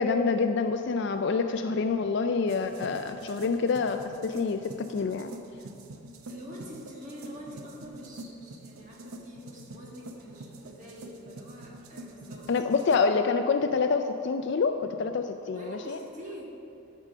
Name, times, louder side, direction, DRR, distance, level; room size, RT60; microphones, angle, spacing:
voice 1, 0.0-5.3 12.5-16.0, left 4 dB, 55° left, 7 dB, 0.3 m, -27 dB
sound 1, 2.5-13.0, right 1 dB, 80° right, 0.7 m, -45 dB
voice 2, 6.2-13.1 15.5-16.5, equal, 35° right, -3 dB, 1.9 m, -45 dB
12.5 x 5.5 x 6.1 m, 2.6 s
head